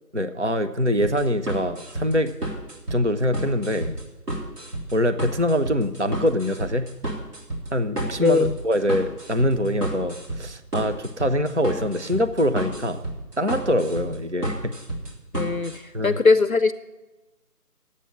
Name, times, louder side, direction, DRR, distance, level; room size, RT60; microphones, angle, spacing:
voice 1, 0.1-2.3 2.9-4.0 4.9-6.9 7.7-8.4 8.6-13.0 13.4-14.7 15.9-16.2, equal, 50° right, 9 dB, 0.5 m, -24 dB
sound 1, 1.0-15.8, right 1 dB, 75° right, 3.4 m, -32 dB
voice 2, 8.2-8.6 15.3-16.7, left 4 dB, 60° left, 13 dB, 0.5 m, -20 dB
10.5 x 8.2 x 7.2 m, 1.1 s
figure-of-eight pair, 175°, 48 cm